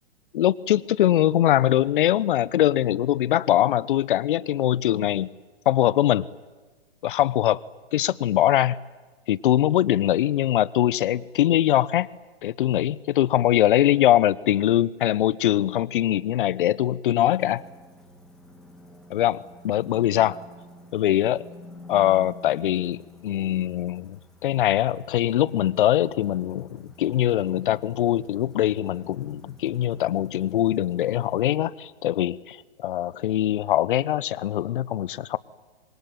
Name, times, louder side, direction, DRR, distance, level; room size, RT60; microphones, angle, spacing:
voice 1, 0.3-5.3 5.6-6.2 7.0-7.6 7.9-8.8 9.3-12.1 12.4-17.6 19.1-20.4 20.9-21.4 21.9-23.0 23.2-35.4, left 12 dB, 55° left, 19 dB, 1.1 m, -22 dB
sound 1, 17.2-31.6, left 1 dB, ahead, 3.2 m, -49 dB
27.0 x 23.0 x 9.4 m, 1.3 s
hypercardioid pair, 130°, 32 cm